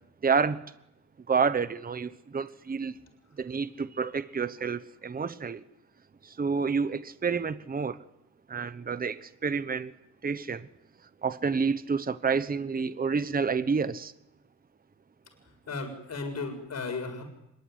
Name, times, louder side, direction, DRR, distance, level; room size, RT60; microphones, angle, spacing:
voice 1, 0.2-0.6 1.3-2.9 3.4-5.6 6.2-8.0 8.5-9.9 10.2-10.7 11.2-14.1, right 5 dB, 25° right, 13 dB, 1.0 m, -29 dB
voice 2, 15.7-17.2, left 3 dB, 50° left, 4 dB, 7.3 m, -35 dB
26.0 x 23.0 x 9.7 m, 0.85 s
wide cardioid pair, 135°, 33 cm